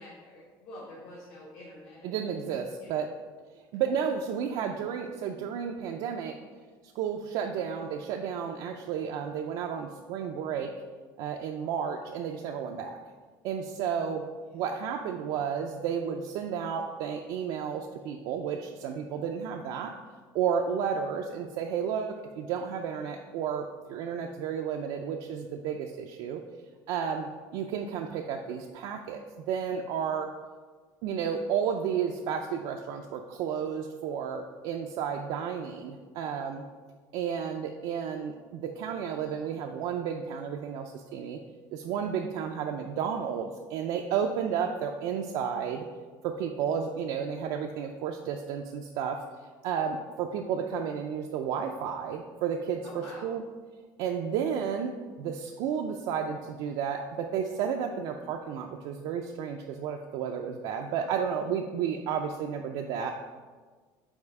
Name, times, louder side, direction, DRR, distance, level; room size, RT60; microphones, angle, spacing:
voice 1, 0.0-2.9 14.0-14.1 14.4-14.6 52.8-53.3, left 1 dB, 60° left, -5 dB, 1.3 m, -48 dB
voice 2, 2.0-3.1 3.7-6.4 7.0-10.7 11.2-13.0 13.4-14.2 14.5-19.9 20.3-26.4 26.9-29.2 29.5-30.3 31.0-36.6 37.1-41.4 41.7-45.9 46.2-49.2 49.6-53.4 54.0-63.2, right 7 dB, 70° right, 2 dB, 0.4 m, -32 dB
5.4 x 4.2 x 4.7 m, 1.4 s
cardioid pair, 155°, 8 cm